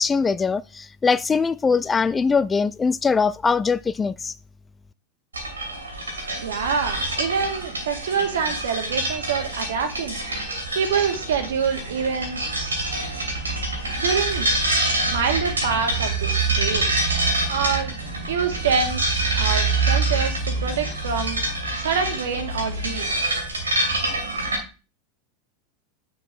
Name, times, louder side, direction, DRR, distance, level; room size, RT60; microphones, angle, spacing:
voice 1, 0.0-4.3, left 5 dB, 15° left, 0.3 m, -22 dB
sound 1, 5.3-24.6, right 2 dB, 80° right, 2.6 m, -26 dB
voice 2, 6.3-10.2 10.8-12.8 14.0-14.5 15.1-16.9 17.5-17.9 18.3-21.4 21.8-23.1, right 6 dB, 65° right, 1.8 m, -26 dB
7.9 x 6.9 x 3.8 m
figure-of-eight pair, 85°, 0 cm